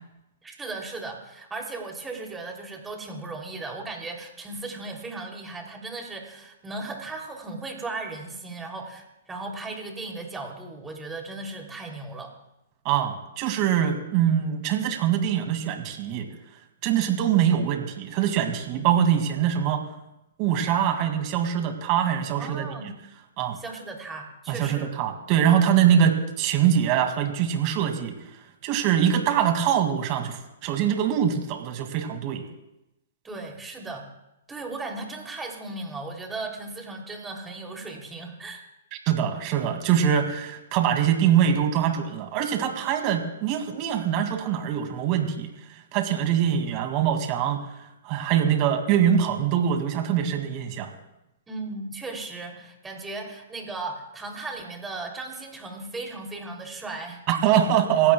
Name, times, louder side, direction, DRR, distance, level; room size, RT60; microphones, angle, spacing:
voice 1, 0.4-12.3 18.7-19.0 22.3-22.9 23.5-24.9 33.2-34.1 34.5-38.6 51.5-57.2, right 3 dB, 10° right, 1 dB, 3.1 m, -36 dB
voice 2, 12.8-16.3 16.8-19.8 20.4-22.7 23.4-23.6 24.5-28.2 28.6-32.4 39.1-45.5 45.9-47.6 48.0-50.9 57.3-58.1, right 9 dB, 40° right, 5 dB, 2.3 m, -23 dB
28.0 x 15.5 x 2.3 m, 0.92 s
hypercardioid pair, 125°, 0 cm